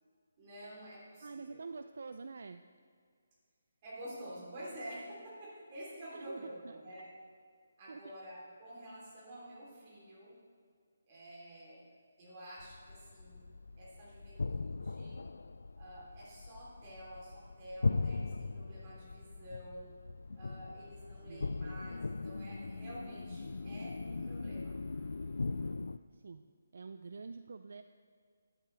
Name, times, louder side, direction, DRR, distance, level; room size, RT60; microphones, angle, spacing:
voice 1, 0.4-1.7 3.8-7.1 7.8-10.4 11.1-11.9 12.2-13.5 13.8-15.2 15.7-19.9 20.4-24.8, equal, 25° right, -5 dB, 3.4 m, -49 dB
voice 2, 1.2-2.6 6.1-6.8 7.9-8.2 21.3-21.5 26.1-27.8, right 4 dB, 65° right, 10 dB, 0.4 m, -47 dB
sound 1, 12.6-26.0, left 3 dB, 85° left, 0.4 m, -39 dB
sound 2, 20.2-25.7, left 3 dB, 15° left, 1.4 m, -62 dB
12.5 x 12.0 x 3.4 m, 2.1 s
hypercardioid pair, 170°, 0 cm